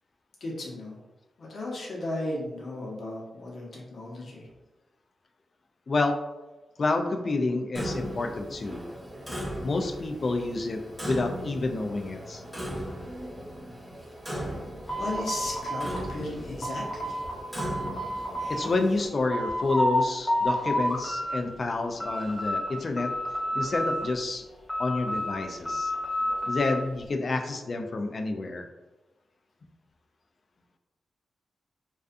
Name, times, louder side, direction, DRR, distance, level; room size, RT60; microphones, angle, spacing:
voice 1, 0.4-1.0 1.4-4.5 14.5-14.6 15.0-17.2, left 1 dB, 65° left, -3 dB, 0.8 m, -35 dB
voice 2, 5.9-6.2 6.8-8.9 9.6-12.4 18.5-23.1 23.5-24.4 24.8-25.9 26.5-28.6, left 3 dB, 50° left, 5 dB, 0.3 m, -29 dB
Clock, 7.7-19.1, equal, ahead, 0.8 m, -38 dB
sound 1, 14.9-17.3 17.6-18.7 19.0-20.0 20.3-21.3 21.7-22.7 23.0-24.2 24.7-26.8, equal, 30° left, 0.7 m, -30 dB
2.4 x 2.3 x 2.4 m, 1.1 s
cardioid pair, 80°, 0 cm